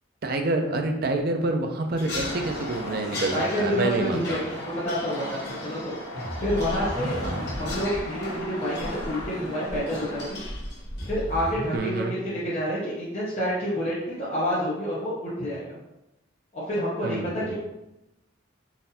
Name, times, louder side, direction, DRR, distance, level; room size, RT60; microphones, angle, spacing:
voice 1, 0.2-4.4 7.2-7.4 11.7-12.1 17.0-17.5, right 2 dB, 50° right, 5 dB, 0.4 m, -27 dB
sound 1, 2.0-11.7, left 2 dB, 55° left, 1.0 m, -40 dB
sound 2, 2.2-10.3, left 1 dB, 90° left, 1.0 m, -37 dB
voice 2, 3.3-5.9 6.4-7.2 7.5-10.4 11.1-15.7 16.5-17.5, equal, 35° left, -9 dB, 0.7 m, -28 dB
sound 3, 6.1-8.0 8.4-8.5 8.7-9.3 9.7-11.8, equal, 5° left, 0.9 m, -35 dB
3.9 x 2.5 x 2.7 m, 0.92 s
head